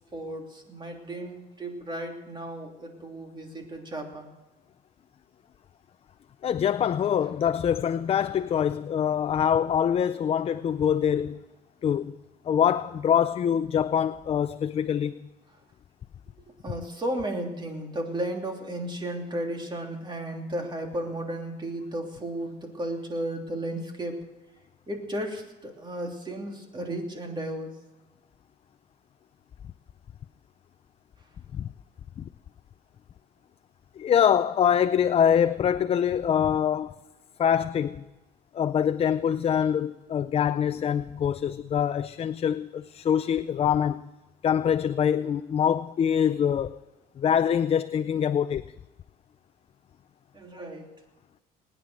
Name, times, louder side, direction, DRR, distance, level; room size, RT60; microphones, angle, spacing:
voice 1, 0.1-4.3 16.6-24.2 24.9-27.7 50.3-50.9, right 1 dB, 25° right, 3.0 m, -34 dB
voice 2, 6.4-11.4 11.8-12.1 12.5-15.2 31.5-31.7 32.2-32.3 34.0-37.0 37.4-38.0 38.5-44.0 44.4-46.8 47.2-48.6, left 8 dB, 35° left, 0.4 m, -24 dB
20.0 x 9.8 x 6.3 m
cardioid pair, 110°, 17 cm